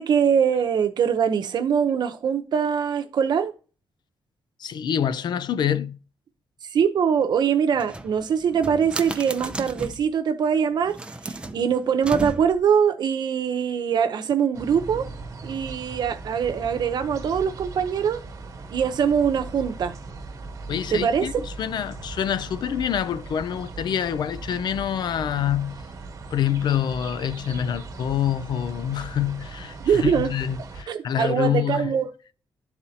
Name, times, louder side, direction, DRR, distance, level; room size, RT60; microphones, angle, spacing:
voice 1, 0.0-3.5 6.7-11.0 11.5-15.1 15.4-18.2 18.7-19.9 20.9-21.3 29.8-30.3 30.9-32.1, right 7 dB, 65° right, 0.8 m, -22 dB
voice 2, 4.6-6.0 20.7-25.8 26.3-31.9, left 9 dB, 65° left, 0.4 m, -26 dB
sound 1, 7.7-10.1 10.8-12.7, right 2 dB, 15° right, 0.5 m, -35 dB
sound 2, 14.5-30.8, right 3 dB, 45° right, 1.3 m, -39 dB
11.0 x 4.2 x 2.8 m
wide cardioid pair, 140°, 8 cm